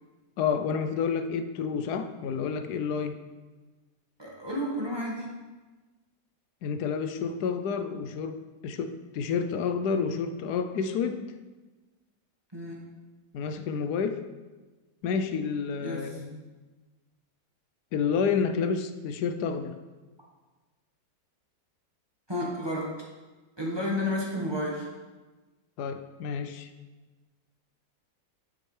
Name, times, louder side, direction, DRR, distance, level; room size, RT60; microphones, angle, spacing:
voice 1, 0.4-3.2 6.6-11.2 13.3-14.2 15.0-16.4 17.9-19.7 25.8-26.7, left 6 dB, 70° left, 8 dB, 1.1 m, -29 dB
voice 2, 4.2-5.3 12.5-12.8 15.8-16.2 22.3-23.0 23.6-24.9, left 1 dB, 15° right, -3 dB, 1.3 m, -31 dB
9.2 x 7.8 x 3.3 m, 1.2 s
omnidirectional pair, 1.9 m